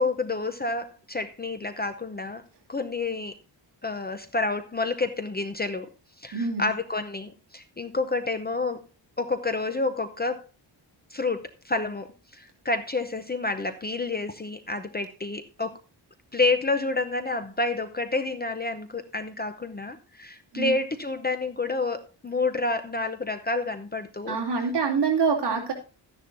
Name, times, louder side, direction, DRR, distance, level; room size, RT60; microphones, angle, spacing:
voice 1, 0.0-2.4 2.7-3.3 3.8-5.9 6.2-8.8 9.2-10.5 11.1-15.8 16.3-24.4, left 3 dB, 20° left, 8 dB, 0.7 m, -29 dB
voice 2, 6.3-6.7 20.5-20.8 24.3-25.7, right 5 dB, 65° right, -1 dB, 2.7 m, -25 dB
13.0 x 10.5 x 2.6 m, 0.32 s
wide cardioid pair, 160°, 43 cm